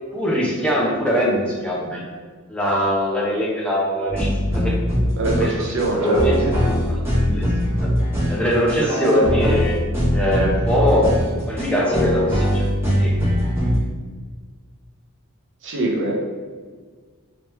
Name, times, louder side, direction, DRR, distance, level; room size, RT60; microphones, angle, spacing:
voice 1, 0.1-2.2 2.5-4.8 5.4-5.6 6.0-6.4 6.9-7.5 7.8-7.9 8.3-9.8 10.1-11.1 11.5-12.6 12.9-13.2, equal, 5° left, -5 dB, 0.7 m, -22 dB
sound 1, 4.1-13.8, equal, 10° right, 1.1 m, -21 dB
voice 2, 5.2-6.5 8.8-9.2 15.6-16.1, right 2 dB, 55° right, -2 dB, 0.8 m, -24 dB
3.2 x 3.1 x 3.1 m, 1.5 s
head